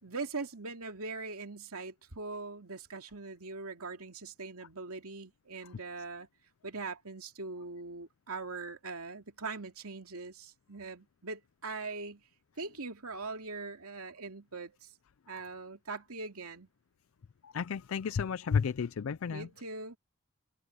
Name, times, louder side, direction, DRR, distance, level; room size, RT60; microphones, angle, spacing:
voice 1, 0.0-6.3 6.6-12.2 12.6-14.9 15.3-16.7 19.3-20.0, right 3 dB, 85° right, 2.7 m, -41 dB
voice 2, 17.4-19.5, left 6 dB, 70° left, 0.4 m, -32 dB
head